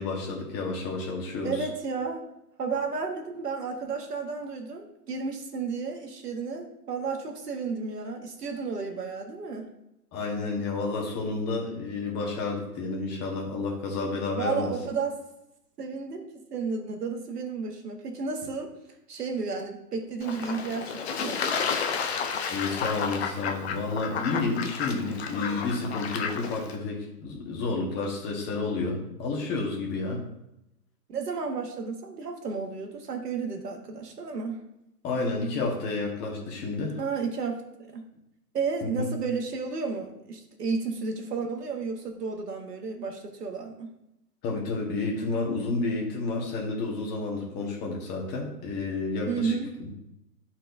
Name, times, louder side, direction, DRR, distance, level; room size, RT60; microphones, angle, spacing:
voice 1, 0.0-1.7 10.1-14.7 22.5-30.2 35.0-37.0 38.8-39.1 44.4-49.9, left 3 dB, 20° left, -1 dB, 1.4 m, -30 dB
voice 2, 1.4-2.2 2.6-9.7 14.4-15.2 15.8-18.7 19.1-21.4 31.1-34.6 37.0-37.6 37.9-38.0 38.5-43.9 49.2-49.7, right 5 dB, 70° right, 3 dB, 1.6 m, -32 dB
Fowl / Bird / Water, 20.2-26.8, left 6 dB, 40° left, 0.7 m, -31 dB
12.0 x 4.4 x 2.7 m, 0.86 s
hypercardioid pair, 135°, 48 cm